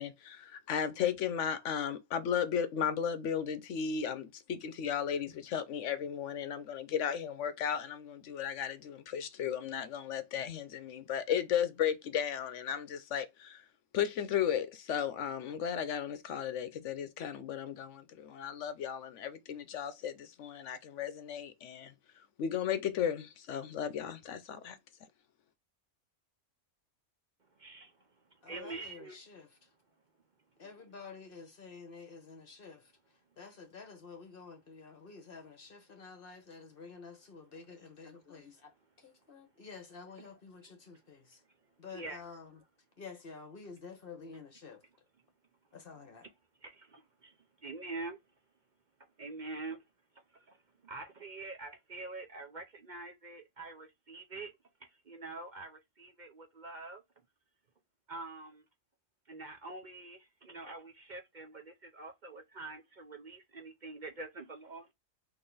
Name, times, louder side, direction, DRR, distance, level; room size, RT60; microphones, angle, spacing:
voice 1, 0.0-13.6 13.9-21.9 22.4-24.8, left 8 dB, 75° left, 1.0 m, -35 dB
voice 2, 27.6-27.9 28.4-29.2 41.9-42.2 46.6-47.3 47.6-48.2 49.2-49.8 50.5-50.6 50.8-54.5 54.8-57.0 58.1-58.6 59.3-64.9, right 3 dB, 45° right, 0.8 m, -45 dB
voice 3, 28.4-29.7 30.6-38.7 39.0-41.4 41.8-42.6 43.0-44.8 45.7-46.3, left 5 dB, 50° left, 1.4 m, -50 dB
4.0 x 2.8 x 3.9 m
omnidirectional pair, 1.3 m